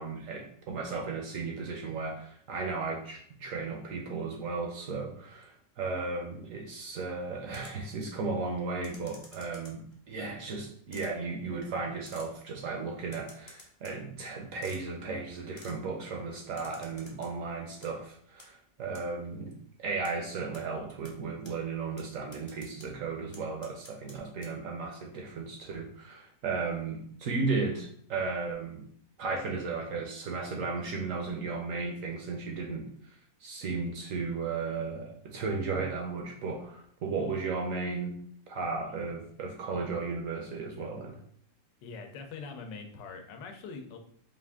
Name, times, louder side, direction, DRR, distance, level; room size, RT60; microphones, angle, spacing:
voice 1, 0.0-28.9 29.2-32.9 33.4-38.2 38.5-41.2, right 4 dB, 65° right, 2 dB, 0.8 m, -35 dB
sound 1, 7.5-7.9 8.8-9.9 10.9-11.1 12.0-12.3 13.1-14.0 14.6-14.8 15.6-15.8 16.6-17.3 17.6-17.9 18.4-18.5 18.9-19.0 20.0-20.1 20.5-20.6 21.0-21.1 21.4-21.5 22.0-22.1 22.3-22.9 23.3-24.1 24.4-24.5, left 1 dB, 45° left, 0.3 m, -51 dB
voice 2, 41.8-44.0, left 4 dB, 80° left, 4 dB, 1.3 m, -43 dB
4.8 x 2.5 x 3.5 m, 0.62 s
omnidirectional pair, 1.9 m